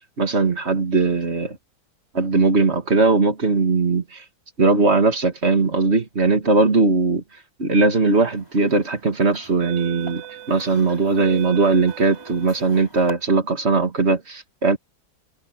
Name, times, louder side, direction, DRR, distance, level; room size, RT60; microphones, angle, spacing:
voice 1, 0.2-1.6 2.1-4.2 4.6-7.2 7.6-10.2 10.5-14.8, right 3 dB, 35° right, 2.6 m, -19 dB
sound 1, 8.3-8.6 9.3-13.1, right 7 dB, 10° right, 5.8 m, -37 dB
omnidirectional pair, 2.0 m